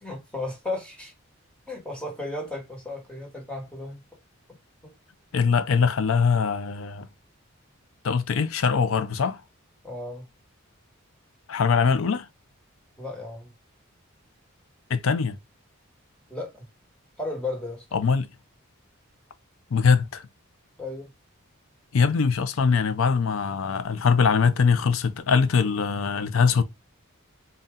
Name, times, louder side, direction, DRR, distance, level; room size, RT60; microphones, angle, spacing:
voice 1, 0.0-1.1 1.7-4.0 4.8-4.9 9.8-10.3 13.0-13.5 16.3-16.6 17.2-17.8 20.8-21.1, left 2 dB, 5° left, 1.1 m, -34 dB
voice 2, 5.3-7.1 8.0-9.4 11.5-12.3 14.9-15.4 17.9-18.3 19.7-20.3 21.9-26.6, left 5 dB, 70° left, 0.5 m, -22 dB
4.0 x 2.3 x 3.6 m
head